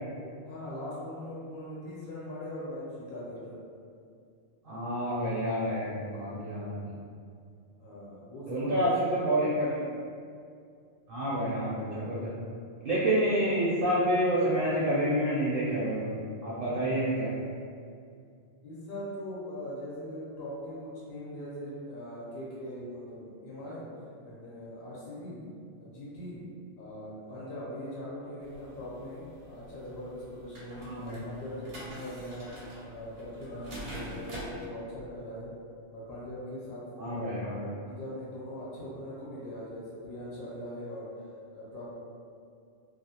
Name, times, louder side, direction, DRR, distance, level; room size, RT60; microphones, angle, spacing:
voice 1, 0.4-3.6 7.8-9.2 18.6-23.9 24.2-25.4 25.8-26.4 26.8-32.5 32.8-35.5 35.9-37.3 37.8-41.1 41.5-41.9, equal, 60° left, -8 dB, 0.8 m, -41 dB
voice 2, 4.6-6.9 8.5-9.8 11.1-12.3 12.8-17.3 30.8-31.2 37.0-37.7, right 1 dB, 60° right, -8 dB, 0.6 m, -28 dB
sound 1, 28.4-34.7, equal, 80° right, 1.0 m, -45 dB
2.4 x 2.0 x 2.7 m, 2.3 s
omnidirectional pair, 1.2 m